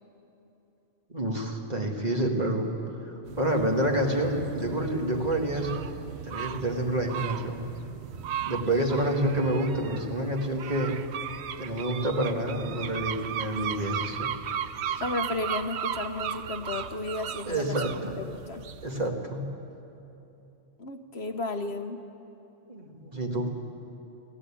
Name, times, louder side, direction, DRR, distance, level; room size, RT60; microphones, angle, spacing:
voice 1, 1.1-2.7 3.0-5.8 6.2-7.6 8.5-11.0 11.6-14.3 17.5-18.1 18.8-19.4 22.7-23.5, right 1 dB, 40° right, 1 dB, 2.1 m, -28 dB
sound 1, 3.3-19.1, right 9 dB, 85° right, 0.9 m, -36 dB
voice 2, 15.0-18.6 20.8-22.0, left 3 dB, 75° left, 6 dB, 1.5 m, -34 dB
28.5 x 12.5 x 8.6 m, 2.9 s
omnidirectional pair, 1.1 m